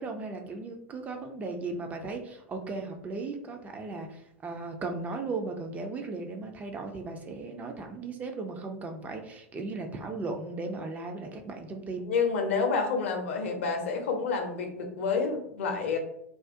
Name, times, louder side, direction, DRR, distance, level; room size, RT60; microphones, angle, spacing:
voice 1, 0.0-12.1, right 3 dB, 20° right, 4 dB, 0.3 m, -36 dB
voice 2, 12.1-16.0, left 5 dB, 60° left, 3 dB, 0.6 m, -29 dB
2.3 x 2.1 x 2.5 m, 0.76 s
figure-of-eight pair, 90°, 8 cm